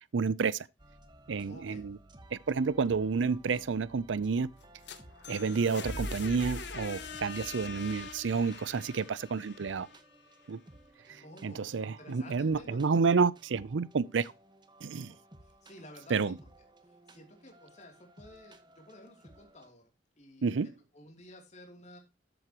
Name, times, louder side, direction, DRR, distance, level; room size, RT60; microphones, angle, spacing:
voice 1, 0.1-0.7 1.3-2.0 2.3-4.5 5.3-9.9 10.5-10.6 11.1-14.3 14.8-15.1 16.1-16.4 20.4-20.7, right 5 dB, 85° right, 0.5 m, -30 dB
sound 1, 0.8-19.7, right 1 dB, 25° right, 1.3 m, -57 dB
voice 2, 1.5-1.8 7.4-7.7 11.2-13.0 15.1-15.2 15.6-16.3 17.1-19.9 20.2-22.0, left 1 dB, 40° left, 2.9 m, -53 dB
sound 2, 4.6-10.5, left 3 dB, 70° left, 2.3 m, -42 dB
13.5 x 7.9 x 2.9 m
head